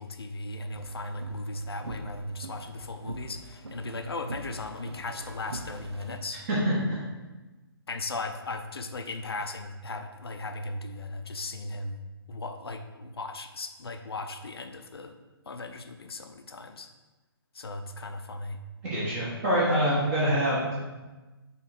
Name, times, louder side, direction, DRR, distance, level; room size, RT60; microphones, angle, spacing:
voice 1, 0.0-6.4 7.9-12.0 12.3-15.2 15.5-16.9 17.5-18.6, left 2 dB, 70° left, 7 dB, 0.6 m, -37 dB
sound 1, 0.7-6.2, right 2 dB, 75° right, 0.7 m, -42 dB
voice 2, 18.8-20.7, equal, 30° right, -7 dB, 1.4 m, -25 dB
5.7 x 3.9 x 4.5 m, 1.2 s
figure-of-eight pair, 140°, 13 cm